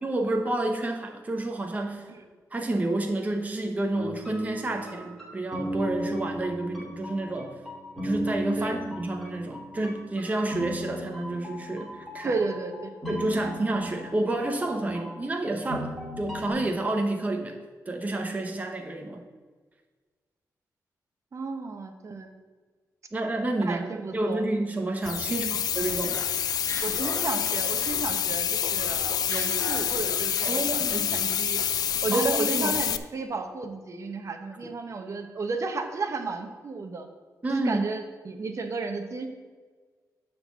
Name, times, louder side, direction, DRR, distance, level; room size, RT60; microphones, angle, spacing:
voice 1, 0.0-2.1 2.5-7.5 8.0-12.4 13.1-17.6 17.9-19.2 23.1-26.2 30.4-31.1 32.1-32.8 37.4-37.8, right 2 dB, 25° right, 3 dB, 0.9 m, -29 dB
sound 1, 4.0-16.5, equal, ahead, 2.9 m, -37 dB
voice 2, 12.2-12.9 13.3-13.4 21.3-22.3 23.7-24.4 25.3-25.6 26.8-31.6 32.0-37.1 37.5-39.3, right 4 dB, 50° right, 5 dB, 1.0 m, -33 dB
sound 2, 25.0-33.0, left 9 dB, 75° left, 0.4 m, -27 dB
Laughter, 26.0-28.3 28.6-31.8, left 3 dB, 40° left, 1.1 m, -40 dB
9.8 x 4.0 x 6.9 m, 1.4 s
cardioid pair, 90°, 7 cm